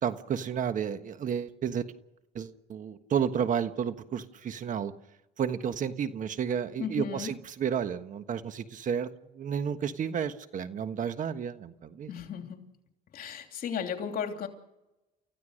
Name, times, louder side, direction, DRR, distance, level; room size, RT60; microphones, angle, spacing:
voice 1, 0.0-1.8 2.3-4.9 5.4-9.1 9.3-12.1, right 8 dB, 50° right, 10 dB, 1.4 m, -31 dB
voice 2, 6.8-7.3 12.1-12.7 13.1-14.5, left 7 dB, 60° left, 5 dB, 3.1 m, -35 dB
30.0 x 15.0 x 6.5 m, 0.96 s
cardioid pair, 110°, 17 cm